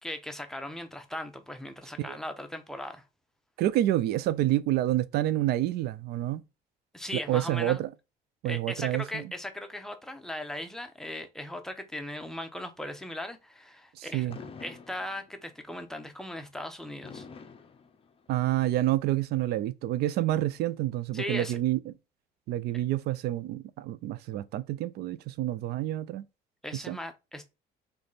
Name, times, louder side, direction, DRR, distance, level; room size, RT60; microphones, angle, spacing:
voice 1, 0.0-3.0 6.9-7.8 8.4-14.3 14.6-17.3 21.1-21.6 26.6-27.4, left 1 dB, 5° left, 0.8 m, -38 dB
voice 2, 3.6-6.4 7.3-7.9 8.4-9.2 14.0-14.4 18.3-21.9 22.5-26.2 26.7-27.0, right 14 dB, 75° right, 0.4 m, -28 dB
Fireworks, 14.3-15.6 17.0-18.6, left 5 dB, 35° left, 0.6 m, -46 dB
3.4 x 3.3 x 4.0 m
cardioid pair, 110°, 17 cm